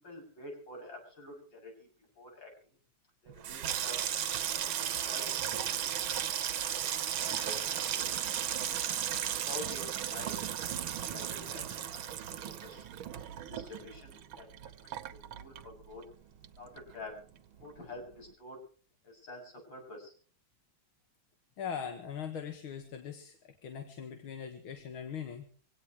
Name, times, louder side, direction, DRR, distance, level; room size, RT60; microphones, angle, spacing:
voice 1, 0.0-1.9 2.2-2.5 3.2-4.1 4.5-6.3 6.7-6.8 7.1-8.7 9.4-10.4 10.7-12.1 12.4-12.8 13.2-14.7 15.1-16.0 16.6-17.2 17.6-18.6 19.0-20.1, left 2 dB, 70° left, 1 dB, 8.5 m, -48 dB
Water tap faucet / Sink (filling or washing), 3.3-16.1 16.4-17.1 17.4-17.7, right 10 dB, 80° right, 1.9 m, -35 dB
voice 2, 21.6-23.4 23.6-25.5, left 7 dB, 85° left, 6 dB, 2.5 m, -40 dB
25.0 x 17.5 x 3.2 m, 0.42 s
omnidirectional pair, 2.2 m